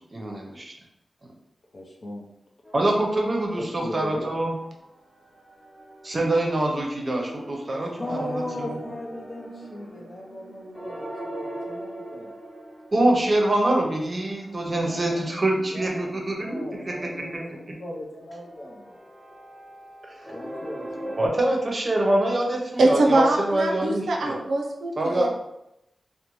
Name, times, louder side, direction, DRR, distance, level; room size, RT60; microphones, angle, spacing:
voice 1, 0.1-0.7 2.7-4.5 6.0-8.8 12.9-17.4 21.2-24.4 25.0-25.3, right 1 dB, 40° right, 0 dB, 0.6 m, -25 dB
voice 2, 1.7-2.2 3.6-4.4 7.8-12.3 14.7-15.2 15.6-17.5 17.8-19.0 20.3-21.3, left 1 dB, 55° left, -1 dB, 0.6 m, -37 dB
sound 1, 2.6-4.9 5.2-21.3, right 1 dB, 15° left, 1.0 m, -42 dB
voice 3, 22.8-24.9 25.2-25.3, right 2 dB, 90° right, 0 dB, 0.5 m, -22 dB
2.6 x 2.0 x 3.0 m, 0.85 s
wide cardioid pair, 80°, 0 cm